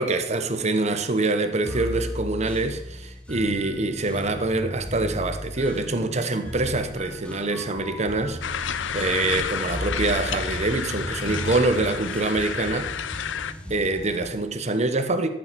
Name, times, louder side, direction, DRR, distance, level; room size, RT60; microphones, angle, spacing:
voice 1, 0.0-12.9 13.7-15.3, right 2 dB, 40° right, 0.9 m, -25 dB
sound 1, 1.7-14.4, equal, 5° left, 1.1 m, -35 dB
sound 2, 8.4-13.5, left 8 dB, 80° left, 0.6 m, -31 dB
13.0 x 7.0 x 6.1 m
head